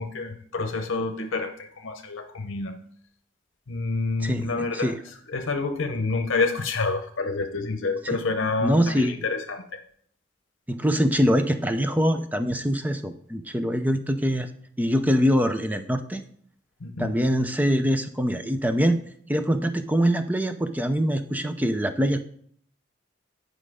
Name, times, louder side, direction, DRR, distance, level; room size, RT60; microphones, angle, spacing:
voice 1, 0.0-2.8 3.7-4.9 5.3-9.8 16.8-17.2, left 3 dB, 80° left, 6 dB, 0.8 m, -28 dB
voice 2, 8.6-9.2 10.7-14.5 14.8-16.2 17.0-19.0 19.3-22.2, equal, 10° right, 9 dB, 0.5 m, -23 dB
9.7 x 5.1 x 4.9 m, 0.63 s
head